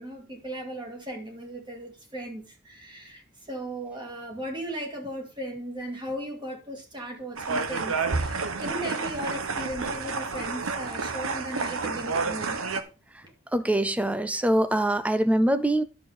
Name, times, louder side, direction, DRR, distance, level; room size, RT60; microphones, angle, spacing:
voice 1, 0.0-3.2 3.5-12.6 13.2-13.3, right 1 dB, 20° right, 2.2 m, -37 dB
sound 1, 7.4-12.8, right 4 dB, 85° right, 1.0 m, -30 dB
voice 2, 13.5-15.8, right 1 dB, 5° right, 0.5 m, -23 dB
10.5 x 6.8 x 4.2 m
head